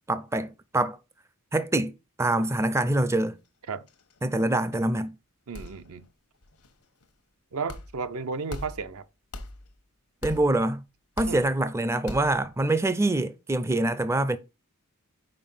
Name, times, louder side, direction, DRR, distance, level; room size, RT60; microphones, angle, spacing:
voice 1, 0.1-1.0 1.5-1.9 2.2-3.4 4.2-5.2 10.2-10.8 11.2-14.4, right 2 dB, 10° right, 0.4 m, -25 dB
sound 1, 2.9-3.2 3.5-3.6 3.8-4.4 4.7-4.9 5.5-6.1 6.4-7.1 7.7-8.1 8.5-9.0 9.3-9.8 10.2-10.7 11.2-11.6 12.1-12.5, left 1 dB, 90° left, 1.1 m, -41 dB
voice 2, 5.5-6.1 7.5-9.1 11.3-11.5, right 4 dB, 70° right, 0.6 m, -33 dB
5.4 x 4.7 x 5.5 m
head